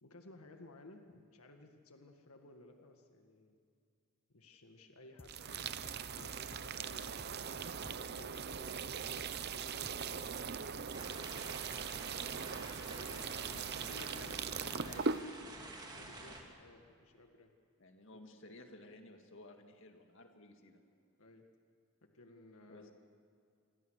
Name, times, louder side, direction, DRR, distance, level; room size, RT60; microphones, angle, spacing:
voice 1, 0.0-3.6 4.3-5.7 6.0-7.5 7.8-10.4 12.9-13.8 14.1-14.6 15.9-17.5 18.1-18.2 21.2-21.5 22.1-22.9, left 2 dB, 90° left, 4 dB, 1.8 m, -58 dB
sound 1, 5.2-10.5, left 2 dB, 25° left, 0.9 m, -57 dB
sound 2, 5.2-15.2, right 6 dB, 50° right, 0.7 m, -40 dB
sound 3, 10.9-16.4, right 2 dB, 20° right, 3.1 m, -50 dB
voice 2, 13.5-15.3 17.8-20.8 22.7-22.9, left 1 dB, 60° left, 4 dB, 2.1 m, -55 dB
27.5 x 23.5 x 6.5 m, 2.4 s
head